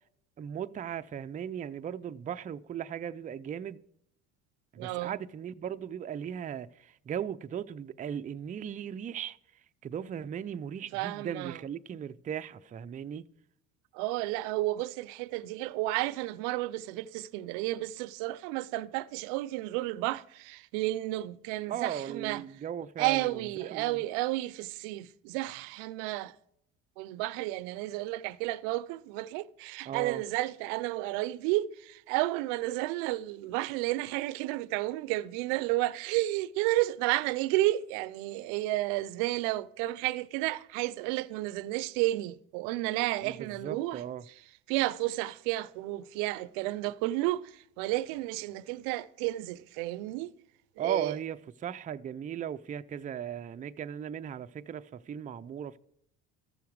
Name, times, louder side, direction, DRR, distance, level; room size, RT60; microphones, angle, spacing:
voice 1, 0.4-3.8 4.7-13.2 21.7-24.0 29.9-30.2 43.2-44.3 50.8-55.8, right 9 dB, 25° right, 0.4 m, -37 dB
voice 2, 4.8-5.2 10.9-11.6 13.9-22.4 23.0-26.3 27.0-44.0 44.7-50.3 50.8-51.1, right 17 dB, 85° right, 0.5 m, -32 dB
14.0 x 7.0 x 4.7 m
supercardioid pair, 85°, 36 cm